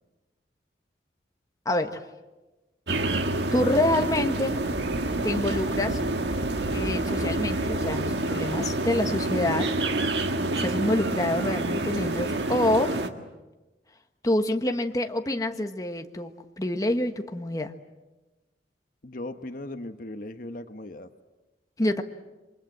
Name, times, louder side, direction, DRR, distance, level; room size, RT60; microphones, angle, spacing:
voice 1, 1.6-2.0 3.5-4.6 5.2-6.0 6.7-9.7 10.6-12.9 14.2-17.7 21.8-22.0, left 1 dB, 20° left, 5 dB, 1.3 m, -27 dB
sound 1, 2.9-13.1, right 2 dB, 75° right, 1.7 m, -27 dB
voice 2, 19.0-21.1, left 1 dB, 50° left, 8 dB, 1.1 m, -38 dB
28.5 x 24.0 x 7.5 m, 1.1 s
head